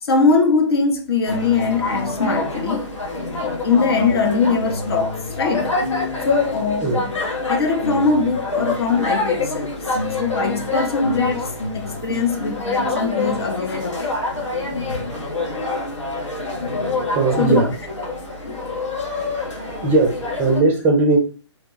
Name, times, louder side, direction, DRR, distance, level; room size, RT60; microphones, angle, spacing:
voice 1, 0.0-2.9 3.4-5.7 6.2-7.1 7.5-9.7 10.2-14.1 17.4-17.6 18.4-18.6, left 4 dB, 55° left, 0.8 m, -21 dB
sound 1, 1.2-20.6, left 3 dB, 90° left, 1.2 m, -26 dB
voice 2, 17.1-17.7 19.5-21.2, right 3 dB, 15° right, 0.5 m, -19 dB
2.9 x 2.2 x 3.8 m
figure-of-eight pair, 135°, 15 cm